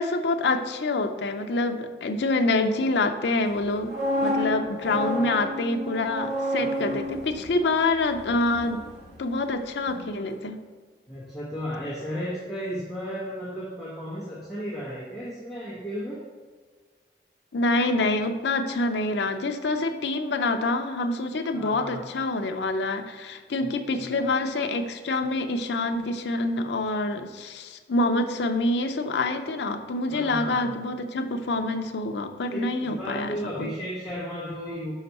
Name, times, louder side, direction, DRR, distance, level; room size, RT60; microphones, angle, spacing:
voice 1, 0.0-3.9 4.2-8.9 9.2-10.6 17.5-33.7, left 2 dB, 75° left, 6 dB, 0.5 m, -26 dB
sound 1, 3.6-9.5 9.8-10.1, equal, 65° right, 1.6 m, -31 dB
voice 2, 4.5-5.4 6.6-7.0 11.1-16.2 21.5-22.0 23.6-23.7 24.0-24.2 30.1-30.7 32.5-34.9, equal, ahead, -10 dB, 1.1 m, -35 dB
5.7 x 5.1 x 4.1 m, 1.5 s
head